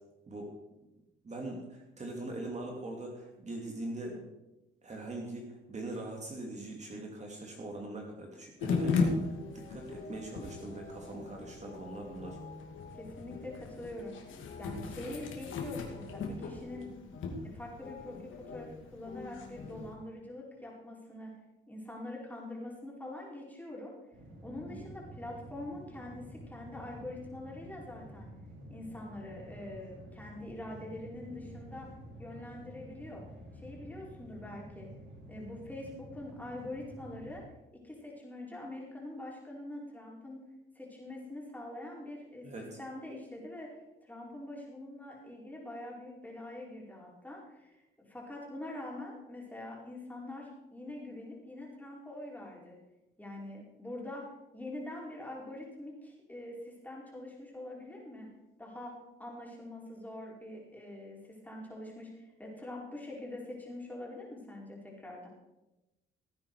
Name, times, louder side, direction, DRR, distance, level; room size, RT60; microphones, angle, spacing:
voice 1, 1.2-4.3 4.8-12.4 24.7-24.8 42.4-42.8, right 2 dB, 35° right, 0 dB, 2.6 m, -42 dB
sound 1, 8.6-19.9, left 4 dB, 80° left, 2.4 m, -37 dB
voice 2, 12.9-14.2 14.6-16.9 17.4-21.4 21.7-23.9 24.4-28.3 28.7-31.9 32.2-33.2 33.5-34.9 35.3-37.4 37.7-40.4 40.7-43.8 44.0-52.8 53.2-54.3 54.5-58.3 58.6-58.9 59.2-65.3, left 1 dB, 10° left, -3 dB, 4.7 m, -44 dB
sound 2, 24.1-37.4, right 1 dB, 70° right, 4.3 m, -50 dB
17.0 x 9.4 x 4.9 m, 1.0 s
cardioid pair, 90°, 20 cm